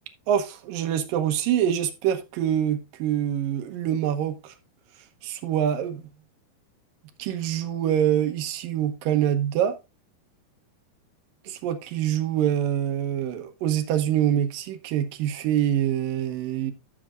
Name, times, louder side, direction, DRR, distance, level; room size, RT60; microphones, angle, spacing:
voice 1, 0.3-4.5 5.2-6.1 7.2-9.8 11.5-16.7, right 10 dB, 70° right, 2.5 m, -25 dB
13.5 x 6.8 x 2.4 m
omnidirectional pair, 4.4 m